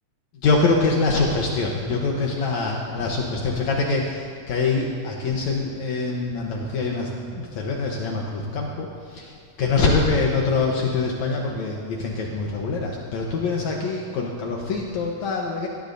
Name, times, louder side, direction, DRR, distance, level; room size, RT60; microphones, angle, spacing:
voice 1, 0.4-15.7, left 3 dB, 70° left, -1 dB, 2.2 m, -24 dB
21.0 x 16.5 x 2.7 m, 2.2 s
omnidirectional pair, 3.6 m